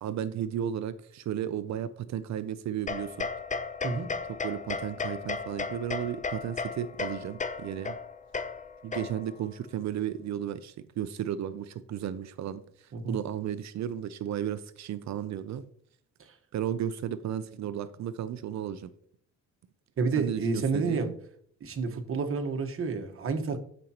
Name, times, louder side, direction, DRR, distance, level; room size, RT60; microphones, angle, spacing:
voice 1, 0.0-3.3 4.3-8.0 8.8-15.7 16.5-18.9 20.2-21.1 23.5-23.6, right 10 dB, 65° right, 0.6 m, -34 dB
sound 1, 2.9-9.4, left 4 dB, 25° left, 0.6 m, -35 dB
voice 2, 20.0-21.1 21.6-23.6, right 4 dB, 45° right, 1.3 m, -30 dB
13.0 x 5.3 x 2.9 m
cardioid pair, 90°, 30 cm